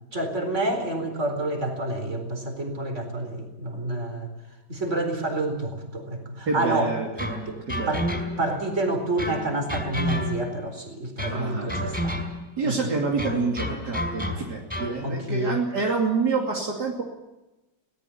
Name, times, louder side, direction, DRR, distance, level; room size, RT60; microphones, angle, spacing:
voice 1, 0.1-4.3 4.7-7.0 7.5-7.6 7.9-8.1 8.4-12.2 12.6-12.9 15.0-15.6, right 2 dB, 40° right, 5 dB, 4.6 m, -28 dB
voice 2, 6.5-7.4 7.7-8.1 8.5-8.6 11.3-12.0 12.6-17.0, right 4 dB, 65° right, -1 dB, 3.4 m, -27 dB
sound 1, 7.2-8.6 9.2-10.6 11.2-12.5 13.2-15.0, equal, 5° left, 5.1 m, -31 dB
21.0 x 19.0 x 7.1 m, 1.0 s
omnidirectional pair, 2.0 m